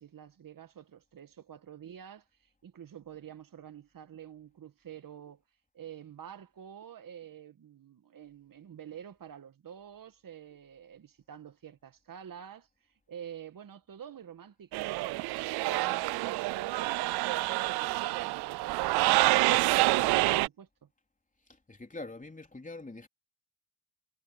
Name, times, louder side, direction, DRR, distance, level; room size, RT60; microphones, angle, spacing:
voice 1, 0.0-5.4 5.7-12.7 13.1-15.2 15.6-20.9, right 9 dB, 60° right, 2.0 m, -48 dB
sound 1, 14.7-20.5, right 20 dB, 80° right, 0.6 m, -27 dB
voice 2, 21.7-23.1, left 2 dB, 20° left, 3.7 m, -43 dB
supercardioid pair, 45°, 38 cm